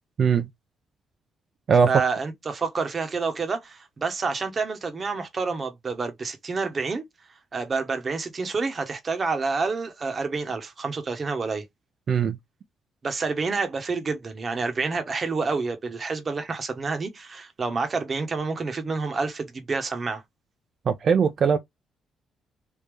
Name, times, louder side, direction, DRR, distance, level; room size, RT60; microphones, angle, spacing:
voice 1, 1.9-7.0 7.5-11.6 13.0-20.2, right 4 dB, 40° right, 1.0 m, -28 dB
voice 2, 20.9-21.6, right 6 dB, 55° right, 0.5 m, -20 dB
3.5 x 2.7 x 3.3 m
cardioid pair, 90°, 0 cm